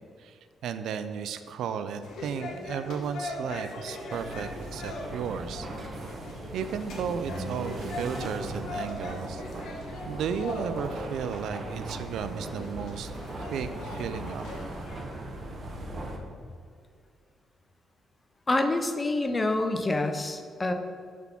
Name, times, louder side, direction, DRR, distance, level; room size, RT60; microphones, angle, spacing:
voice 1, 0.2-5.7 6.5-9.4 10.0-13.1 13.4-14.4, right 7 dB, 75° right, 11 dB, 0.4 m, -34 dB
sound 1, 2.0-15.0, left 2 dB, 75° left, 1.2 m, -40 dB
sound 2, 4.1-16.2, right 2 dB, 40° right, 0.9 m, -38 dB
voice 2, 18.5-20.7, left 2 dB, 20° left, 6 dB, 0.6 m, -27 dB
5.9 x 3.6 x 5.8 m, 2.2 s
cardioid pair, 90°, 0 cm